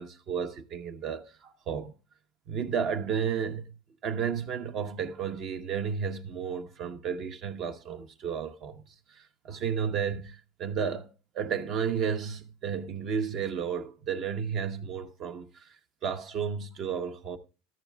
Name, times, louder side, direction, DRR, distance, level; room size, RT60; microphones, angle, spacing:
voice 1, 0.0-1.9 2.5-3.7 4.0-8.8 9.1-11.1 11.3-17.4, right 7 dB, 45° right, 0.9 m, -32 dB
13.0 x 10.5 x 2.3 m
supercardioid pair, 130°, 0 cm